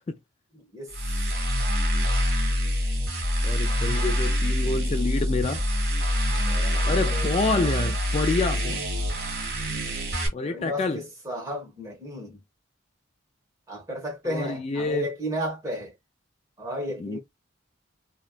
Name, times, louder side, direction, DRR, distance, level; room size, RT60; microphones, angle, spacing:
voice 1, 0.5-0.9 6.5-7.4 10.4-12.4 13.7-15.9 16.6-17.2, equal, 15° right, 1.5 m, -33 dB
sound 1, 0.9-10.3, equal, 55° right, 1.6 m, -25 dB
voice 2, 3.4-5.6 6.8-8.8 10.3-11.0 14.2-15.1 17.0-17.2, left 3 dB, 30° left, 0.3 m, -27 dB
3.2 x 2.9 x 2.4 m
head